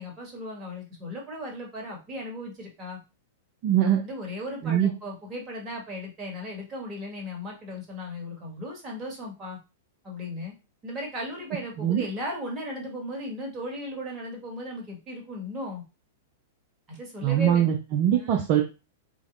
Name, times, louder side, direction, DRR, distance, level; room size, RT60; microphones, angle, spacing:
voice 1, 0.0-3.0 3.8-9.6 10.0-10.5 10.8-15.8 16.9-17.7 18.1-18.5, left 1 dB, 25° right, -1 dB, 1.8 m, -36 dB
voice 2, 3.6-4.0 4.6-4.9 11.8-12.0 17.2-18.6, right 10 dB, 40° right, 1 dB, 0.6 m, -22 dB
4.9 x 3.0 x 2.6 m, 0.29 s
figure-of-eight pair, 100°, 0 cm